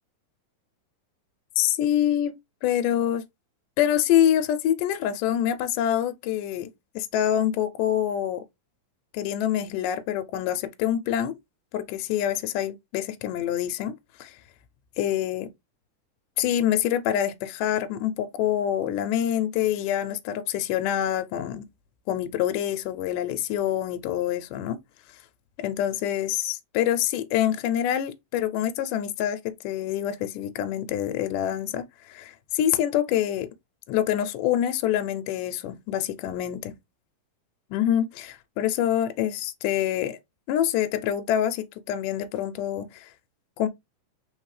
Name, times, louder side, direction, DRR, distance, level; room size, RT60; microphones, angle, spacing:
voice 1, 1.6-2.3 2.6-3.2 3.8-8.4 9.1-11.3 11.7-13.9 14.2-14.4 15.0-15.5 16.4-21.7 22.1-24.8 25.6-33.5 33.9-36.7 37.7-40.2 40.5-43.1 43.6-43.7, left 11 dB, 80° left, 2.0 m, -26 dB
4.4 x 3.8 x 3.1 m
omnidirectional pair, 3.9 m